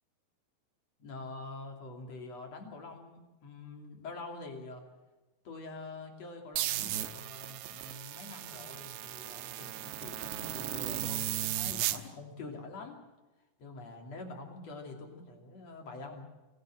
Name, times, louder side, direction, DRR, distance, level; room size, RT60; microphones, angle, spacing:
voice 1, 1.0-4.8 5.4-13.0 13.6-16.3, left 3 dB, 40° left, 2 dB, 3.2 m, -45 dB
sound 1, 6.6-12.0, right 13 dB, 75° right, 2.7 m, -36 dB
26.5 x 15.0 x 7.7 m, 1.1 s
omnidirectional pair, 5.9 m